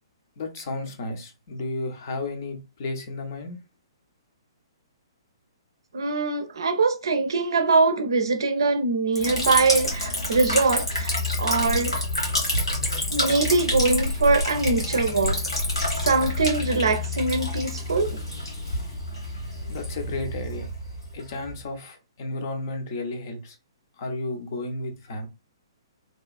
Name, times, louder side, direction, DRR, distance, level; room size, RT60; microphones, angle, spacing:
voice 1, 0.4-3.6 19.7-20.7 21.1-23.6 24.0-25.3, left 2 dB, 45° left, 0.7 m, -33 dB
voice 2, 5.9-12.0 13.1-15.4 16.0-18.2, right 3 dB, 65° right, 0.5 m, -23 dB
Liquid, 9.2-21.6, left 1 dB, 85° left, 1.5 m, -28 dB
2.9 x 2.3 x 2.3 m
figure-of-eight pair, 120°, 3 cm